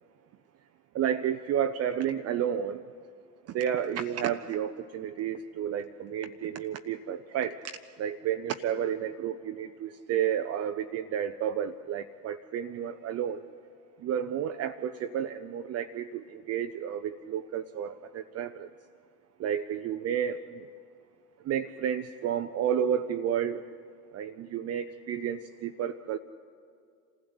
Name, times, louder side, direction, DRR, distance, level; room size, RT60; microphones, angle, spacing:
voice 1, 1.0-2.8 3.5-13.4 14.0-18.7 19.4-20.7 21.4-23.7 24.1-26.2, right 9 dB, 30° right, 8 dB, 0.6 m, -31 dB
27.0 x 15.5 x 8.0 m, 2.3 s
hypercardioid pair, 80°, 50 cm